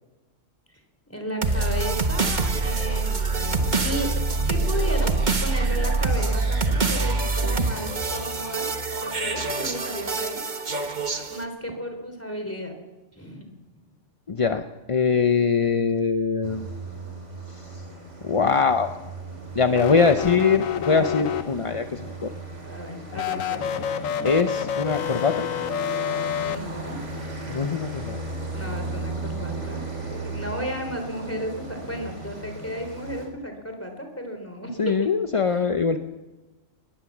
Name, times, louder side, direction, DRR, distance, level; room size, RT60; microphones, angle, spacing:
voice 1, 1.1-4.1 4.4-5.2 5.4-10.4 11.3-12.7 13.1-13.5 22.6-24.3 26.4-27.0 28.4-35.1 35.5-35.7, equal, 10° left, 5 dB, 3.5 m, -34 dB
sound 1, 1.4-11.4, right 3 dB, 35° right, 1.3 m, -25 dB
voice 2, 14.3-14.6 14.9-16.7 17.5-17.7 18.2-18.9 19.5-22.3 24.2-25.5 27.5-28.2 34.8-36.0, left 5 dB, 30° left, 7 dB, 0.7 m, -22 dB
sound 2, 16.4-33.2, right 2 dB, 60° right, 4.6 m, -36 dB
sound 3, 19.7-21.9 23.1-26.6, left 9 dB, 80° left, 1.3 m, -28 dB
21.0 x 19.0 x 7.3 m, 1.1 s
omnidirectional pair, 1.4 m